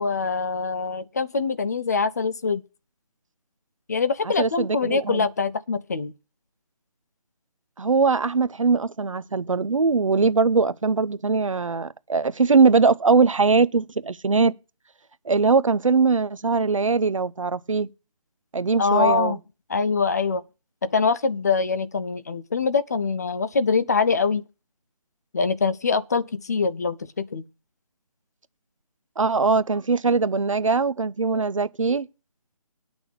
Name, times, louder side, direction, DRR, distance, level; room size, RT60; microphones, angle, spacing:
voice 1, 0.0-2.6 3.9-6.1 18.8-19.4 19.7-20.4 20.8-24.4 25.3-27.4, left 5 dB, 30° left, 0.6 m, -24 dB
voice 2, 4.2-5.3 7.8-14.5 15.2-17.9 18.5-19.4 29.2-32.1, right 4 dB, 60° right, 0.9 m, -21 dB
10.0 x 6.1 x 7.1 m
figure-of-eight pair, 155°, 19 cm